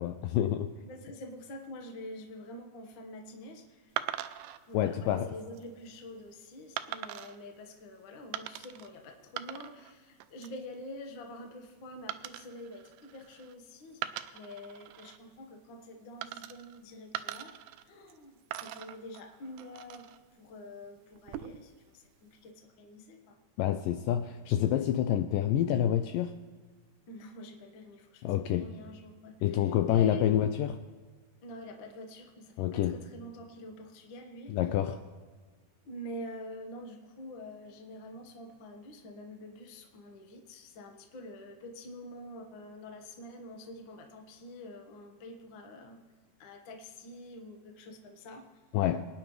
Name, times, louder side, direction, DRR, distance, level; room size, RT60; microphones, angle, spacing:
voice 1, 0.0-0.7 4.7-5.3 23.6-26.3 28.2-28.7 29.4-30.8 32.6-33.0 34.5-35.0 48.7-49.0, left 11 dB, 80° left, 9 dB, 2.0 m, -28 dB
voice 2, 0.8-4.0 4.7-17.5 17.8-23.4 27.1-30.3 31.4-34.5 35.8-46.0 46.4-48.5, left 1 dB, 65° left, 3 dB, 1.2 m, -46 dB
sound 1, 4.0-4.6 5.3-5.6 6.8-7.4 8.3-8.9 9.2-9.9 10.2-10.6 12.1-13.5 13.9-15.2 16.2-16.8 17.1-18.2 18.5-20.2 21.1-21.7, right 12 dB, 80° right, 2.1 m, -41 dB
23.0 x 10.0 x 3.2 m, 1.5 s
omnidirectional pair, 4.2 m